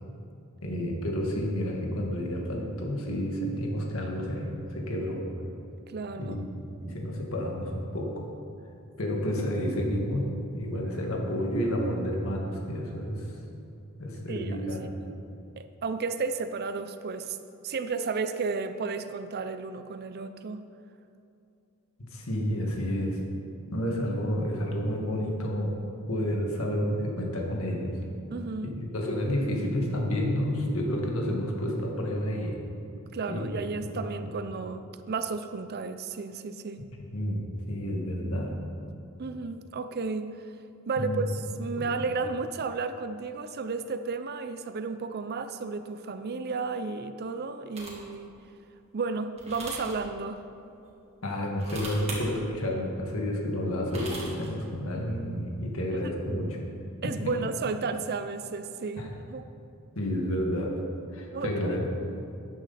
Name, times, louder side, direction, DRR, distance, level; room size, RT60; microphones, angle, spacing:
voice 1, 0.6-5.2 6.2-6.5 6.8-8.2 9.0-13.3 14.0-14.9 22.1-23.2 23.7-25.8 26.1-28.0 28.6-32.6 33.3-34.3 37.1-38.6 41.0-41.2 41.8-41.9 51.2-56.7 59.0-59.1 60.0-60.7 61.1-61.8, equal, 65° left, 0 dB, 1.8 m, -30 dB
voice 2, 5.9-6.5 14.3-14.7 15.0-15.1 15.6-17.4 17.6-20.7 28.3-28.8 33.1-36.8 39.2-40.4 40.9-48.3 48.9-50.4 57.0-59.5 61.3-61.5, right 4 dB, 45° right, 10 dB, 0.5 m, -33 dB
sound 1, 47.8-48.1 49.4-50.0 51.5-52.2 53.7-54.5, right 2 dB, 30° right, 2.1 m, -39 dB
12.5 x 9.7 x 4.2 m, 2.7 s
head